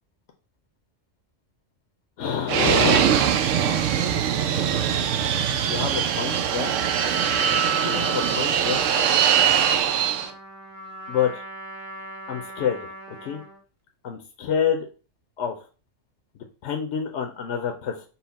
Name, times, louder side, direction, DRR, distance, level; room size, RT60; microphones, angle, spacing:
voice 1, 2.2-3.1 5.7-6.7 7.1-8.9 11.1-11.4 12.3-13.4 14.0-14.9 15.4-15.5 16.6-18.0, left 8 dB, 70° left, 3 dB, 0.9 m, -28 dB
Fixed-wing aircraft airplane, 2.5-10.3, right 8 dB, 80° right, 0.9 m, -22 dB
Trumpet, 7.0-13.6, equal, 15° right, 0.7 m, -40 dB
5.5 x 2.1 x 4.0 m, 0.35 s
omnidirectional pair, 1.3 m